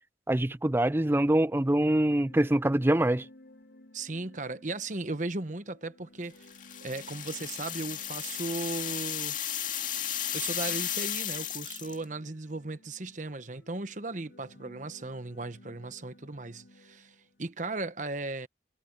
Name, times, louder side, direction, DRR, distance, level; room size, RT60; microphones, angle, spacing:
voice 1, 0.3-3.2, right 1 dB, 15° right, 0.4 m, -24 dB
sound 1, 1.8-17.5, left 1 dB, 75° left, 4.4 m, -57 dB
voice 2, 3.9-6.5 6.8-9.4 10.3-18.5, right 2 dB, 45° right, 1.1 m, -36 dB
sound 2, 6.5-12.0, left 11 dB, 45° left, 2.2 m, -34 dB
head